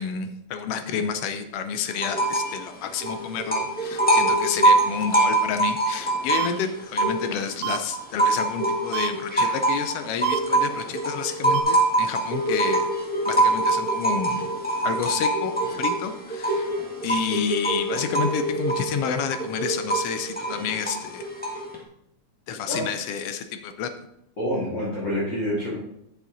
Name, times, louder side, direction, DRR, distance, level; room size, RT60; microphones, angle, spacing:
voice 1, 0.0-12.9 13.3-14.5 14.8-16.7 17.0-21.2 22.5-23.9, left 7 dB, 75° left, 8 dB, 1.4 m, -30 dB
sound 1, 2.0-2.6 2.9-7.5 7.9-21.7, right 2 dB, 5° left, 0.7 m, -24 dB
sound 2, 6.3-6.5 7.6-7.8 8.9-9.1 10.2-10.4 11.5-11.6, right 11 dB, 85° right, 2.8 m, -27 dB
voice 2, 24.4-25.8, equal, 40° left, -8 dB, 2.8 m, -27 dB
9.0 x 7.2 x 3.9 m, 0.77 s
omnidirectional pair, 3.5 m